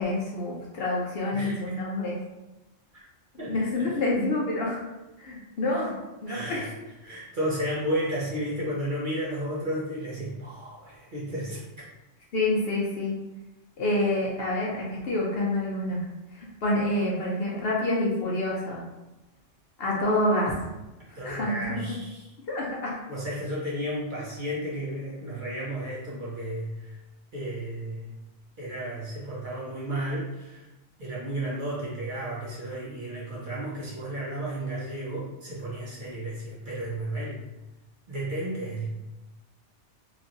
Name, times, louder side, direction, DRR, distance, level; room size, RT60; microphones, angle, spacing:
voice 1, 0.0-2.2 3.5-4.8 5.2-6.7 12.3-13.2 13.8-16.0 16.6-18.8 19.8-20.5 21.2-21.8 22.5-22.9, left 1 dB, 60° left, -4 dB, 0.7 m, -27 dB
voice 2, 1.3-1.8 3.4-3.9 6.3-6.7 7.0-11.6 21.2-22.3 23.1-27.0 27.3-28.1 28.6-30.6 31.0-37.4 38.1-38.9, right 1 dB, 50° right, -6 dB, 0.7 m, -33 dB
3.0 x 2.5 x 2.5 m, 1.0 s
omnidirectional pair, 1.3 m